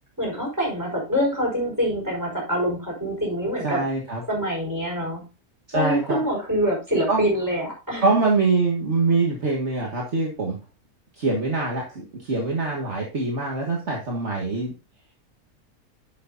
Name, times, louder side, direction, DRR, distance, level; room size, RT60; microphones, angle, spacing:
voice 1, 0.2-3.8 4.3-5.3 5.7-8.0, equal, 10° right, -2 dB, 5.2 m, -25 dB
voice 2, 3.6-4.2 5.7-6.2 7.1-7.2 8.0-10.6 11.2-14.7, right 3 dB, 50° right, -1 dB, 1.9 m, -24 dB
11.5 x 6.9 x 2.6 m, 0.31 s
omnidirectional pair, 1.5 m